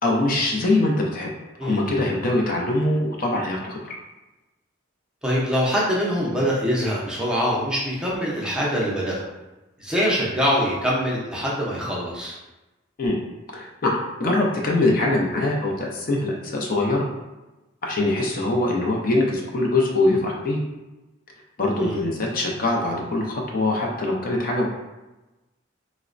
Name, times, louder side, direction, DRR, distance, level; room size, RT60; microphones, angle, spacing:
voice 1, 0.0-1.3 1.6-4.0 13.0-13.2 13.5-17.0 17.8-20.6 21.6-24.7, left 2 dB, 45° left, -1 dB, 0.4 m, -23 dB
voice 2, 1.6-2.0 5.2-9.3 9.8-12.4 21.8-22.0, equal, 5° right, -6 dB, 0.5 m, -24 dB
4.0 x 2.1 x 2.4 m, 1.1 s
head